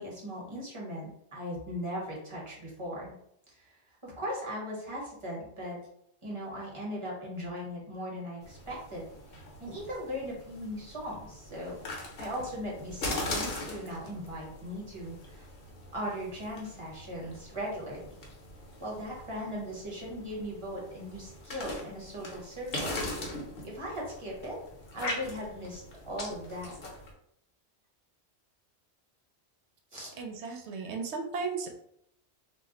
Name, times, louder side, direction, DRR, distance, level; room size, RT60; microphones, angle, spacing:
voice 1, 0.0-3.1 3.5-5.8 6.2-9.1 9.6-11.8 12.2-15.5 15.9-18.1 18.8-24.6 24.9-26.7 29.9-30.2, equal, 30° right, -3 dB, 0.9 m, -38 dB
sound 1, 8.4-27.1, left 1 dB, 60° left, 0.9 m, -41 dB
voice 2, 30.2-31.7, right 4 dB, 80° right, 3 dB, 0.8 m, -35 dB
2.3 x 2.1 x 3.7 m, 0.71 s
omnidirectional pair, 1.1 m